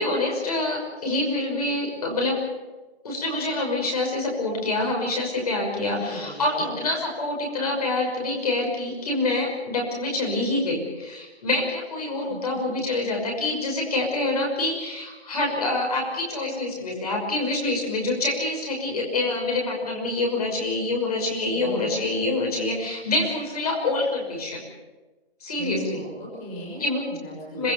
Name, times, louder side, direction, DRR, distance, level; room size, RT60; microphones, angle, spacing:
voice 1, 0.0-2.4 3.0-24.6 25.4-26.0 26.8-27.2 27.5-27.7, left 2 dB, 35° left, 0 dB, 5.9 m, -26 dB
voice 2, 6.0-6.8 12.3-12.7 21.5-22.2 25.6-27.7, equal, 15° left, -3 dB, 5.8 m, -37 dB
26.5 x 19.5 x 7.1 m, 1.2 s
hypercardioid pair, 170°, 33 cm